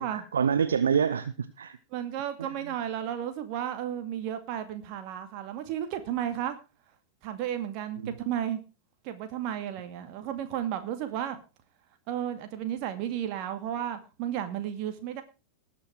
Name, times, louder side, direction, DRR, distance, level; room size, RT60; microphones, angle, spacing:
voice 1, 0.0-1.8 2.4-2.7 8.0-8.1, right 7 dB, 70° right, 12 dB, 0.7 m, -27 dB
voice 2, 1.9-6.6 7.2-8.6 9.0-11.4 12.1-15.2, right 10 dB, 45° right, 8 dB, 2.3 m, -33 dB
19.5 x 6.8 x 4.7 m, 0.31 s
figure-of-eight pair, 90°, 0 cm